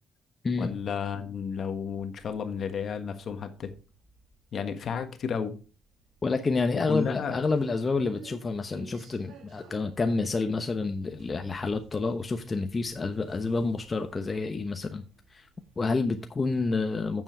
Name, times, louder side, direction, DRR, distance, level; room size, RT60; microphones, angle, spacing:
voice 1, 0.6-3.7 4.5-5.6 6.7-7.4, left 6 dB, 60° left, 1.5 m, -32 dB
sound 1, 0.6-16.2, right 5 dB, 75° right, 2.6 m, -55 dB
voice 2, 6.2-15.0 15.3-15.5 15.8-17.2, left 3 dB, 30° left, 1.0 m, -29 dB
8.7 x 7.4 x 4.6 m
cardioid pair, 90°, 0 cm